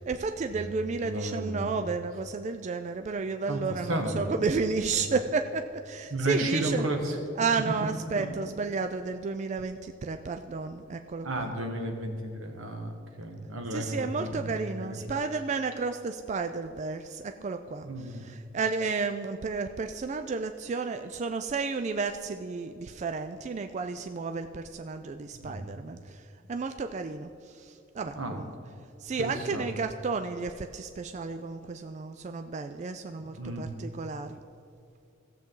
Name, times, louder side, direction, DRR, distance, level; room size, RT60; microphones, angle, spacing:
voice 1, 0.0-6.8 7.4-11.5 13.7-26.2 26.5-28.5 29.0-34.4, right 4 dB, 35° right, 7 dB, 0.3 m, -32 dB
voice 2, 1.0-1.7 3.5-4.4 5.0-5.2 6.1-7.2 7.6-7.7 8.2-8.3 11.2-14.5 14.8-15.2 17.8-18.2 25.3-25.8 28.1-28.4 29.2-29.7 33.2-33.7, right 1 dB, 80° right, 3 dB, 1.4 m, -33 dB
16.0 x 7.5 x 3.8 m, 2.6 s
head